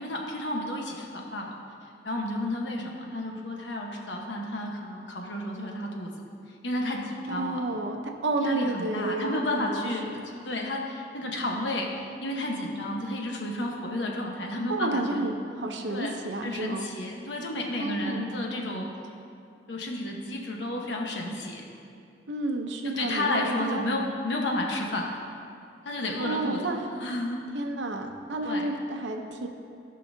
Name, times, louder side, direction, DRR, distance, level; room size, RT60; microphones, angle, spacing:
voice 1, 0.0-1.5 2.0-6.1 6.6-7.6 8.4-10.1 10.4-15.2 15.9-16.2 16.4-18.9 19.7-21.6 23.0-25.1 25.8-26.6 27.0-27.4 28.4-28.6, left 1 dB, 85° left, 0 dB, 1.2 m, -31 dB
voice 2, 7.3-10.3 14.7-16.9 17.8-18.3 22.3-23.9 26.2-26.9 27.5-29.5, right 2 dB, 85° right, 4 dB, 0.8 m, -31 dB
16.5 x 5.5 x 2.7 m, 2.5 s
head